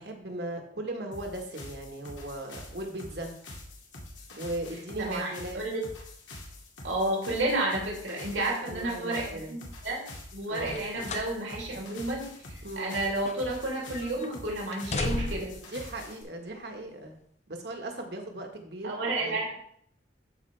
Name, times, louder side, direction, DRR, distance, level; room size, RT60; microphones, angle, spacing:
voice 1, 0.0-3.4 4.4-5.6 8.3-9.6 10.5-10.8 12.6-12.9 15.7-17.2 17.5-19.4, right 1 dB, 60° right, 3 dB, 1.6 m, -38 dB
sound 1, 1.1-16.2, left 1 dB, 85° left, 2.4 m, -46 dB
voice 2, 5.0-5.8 6.8-10.0 10.3-15.6 18.8-19.6, right 2 dB, 85° right, -3 dB, 3.0 m, -31 dB
sound 2, 10.7-11.4 11.8-11.9 12.6-13.7 13.9-14.3 14.7-15.7 16.5-16.6, left 3 dB, 35° left, 0.5 m, -35 dB
13.0 x 5.1 x 3.4 m, 0.66 s
head